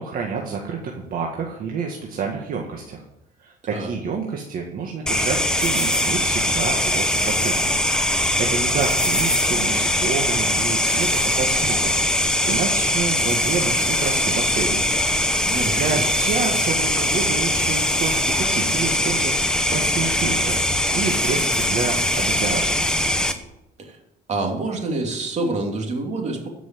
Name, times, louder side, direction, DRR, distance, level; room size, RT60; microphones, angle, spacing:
voice 1, 0.0-3.0 3.4-7.8 8.1-11.1 11.4-14.8 15.8-22.9, right 5 dB, 60° right, 0 dB, 1.9 m, -28 dB
sound 1, 5.1-23.3, left 1 dB, 5° left, 1.2 m, -21 dB
voice 2, 15.4-16.1 23.8-24.0 24.3-26.5, right 2 dB, 40° right, 2 dB, 3.1 m, -27 dB
14.0 x 6.2 x 7.8 m, 0.85 s
cardioid pair, 110°, 17 cm